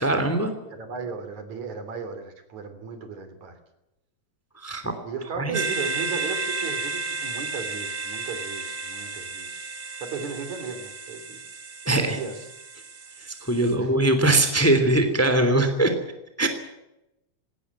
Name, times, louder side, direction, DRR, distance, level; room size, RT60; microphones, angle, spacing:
voice 1, 0.0-0.5 4.6-4.9 5.3-5.6 11.9-12.2 13.3-15.9 16.4-16.5, right 2 dB, 5° left, 8 dB, 2.5 m, -21 dB
voice 2, 0.6-3.5 5.0-9.7 10.0-11.4 11.9-12.4 13.8-14.0, right 5 dB, 75° right, 9 dB, 4.4 m, -35 dB
sound 1, 5.5-13.7, right 4 dB, 45° right, 3.1 m, -33 dB
19.5 x 17.5 x 9.6 m, 0.91 s
omnidirectional pair, 3.3 m